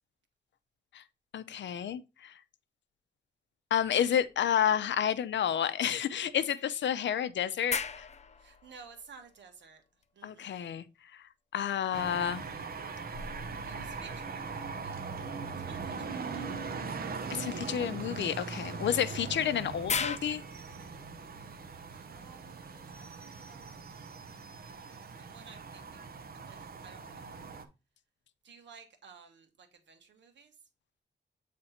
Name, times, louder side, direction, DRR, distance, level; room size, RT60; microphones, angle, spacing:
voice 1, 1.3-2.3 3.7-8.1 10.2-10.8 11.1-11.2 11.5-12.4 17.3-20.4, left 9 dB, 90° left, 0.5 m, -30 dB
sound 1, 3.8-5.1 5.5-5.6 6.6-10.0 11.8-14.9 16.6-16.8 18.9-20.2, left 5 dB, 40° left, 0.5 m, -40 dB
voice 2, 8.4-9.8 10.1-10.6 13.7-15.0 15.7-16.8 21.9-24.6 24.9-27.4 28.4-30.5, right 5 dB, 90° right, 1.4 m, -55 dB
sound 2, 11.9-27.6, right 5 dB, 55° right, 0.9 m, -40 dB
7.9 x 3.3 x 4.2 m
wide cardioid pair, 160°, 18 cm